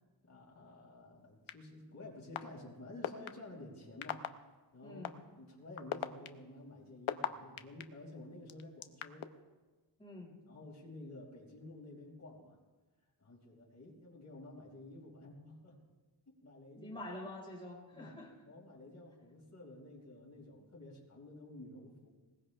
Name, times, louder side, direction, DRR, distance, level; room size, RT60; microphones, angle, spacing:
voice 1, 0.3-4.2 4.7-5.0 5.4-9.3 10.5-12.6 13.2-15.8 16.2-17.0 17.9-18.2 18.4-22.1, left 2 dB, 35° left, -4 dB, 5.0 m, -51 dB
sound 1, 1.5-1.6 2.3-2.4 3.0-3.3 4.0-4.3 5.0-5.1 5.8-7.8 8.5-9.3, left 10 dB, 85° left, 0.9 m, -36 dB
voice 2, 4.8-5.2 10.0-10.4 16.8-18.3, left 1 dB, 10° left, -2 dB, 4.6 m, -47 dB
20.5 x 19.5 x 3.4 m, 1.2 s
wide cardioid pair, 165°, 46 cm